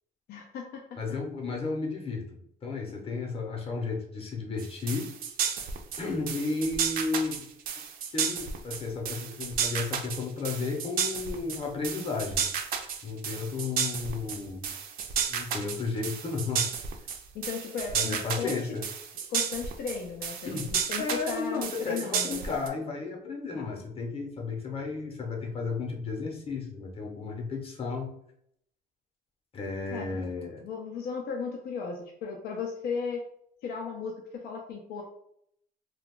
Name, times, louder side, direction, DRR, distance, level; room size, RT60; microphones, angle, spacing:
voice 1, 0.3-1.0 17.3-18.7 19.3-22.5 23.5-23.8 29.9-30.2 30.6-33.2 33.6-35.0, left 5 dB, 70° left, 1 dB, 0.5 m, -36 dB
voice 2, 1.0-5.1 6.0-7.5 8.1-12.5 13.0-14.7 15.3-16.7 17.9-18.8 20.4-20.7 21.0-28.1 29.5-30.6, left 4 dB, 35° left, 1 dB, 0.8 m, -33 dB
sound 1, 4.6-22.7, right 7 dB, 60° right, 0.5 m, -32 dB
2.3 x 2.3 x 3.6 m, 0.71 s
cardioid pair, 110°, 17 cm